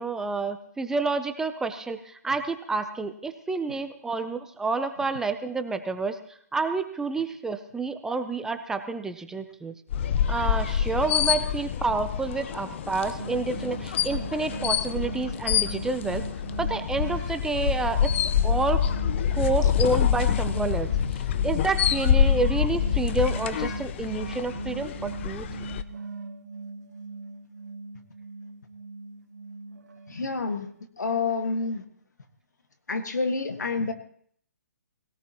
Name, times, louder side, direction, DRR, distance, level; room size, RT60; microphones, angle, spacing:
voice 1, 0.0-6.2 6.5-9.7 10.3-16.2 16.6-18.8 19.3-20.9 21.4-25.5, right 3 dB, 5° right, 9 dB, 0.6 m, -29 dB
sound 1, 9.9-25.8, left 9 dB, 45° left, 0.7 m, -26 dB
sound 2, 13.2-30.8, right 4 dB, 80° right, 2.3 m, -40 dB
voice 2, 30.1-30.7 31.0-31.8 32.9-33.9, left 4 dB, 85° left, 7 dB, 1.8 m, -28 dB
21.0 x 17.5 x 3.0 m, 0.62 s
hypercardioid pair, 145°, 9 cm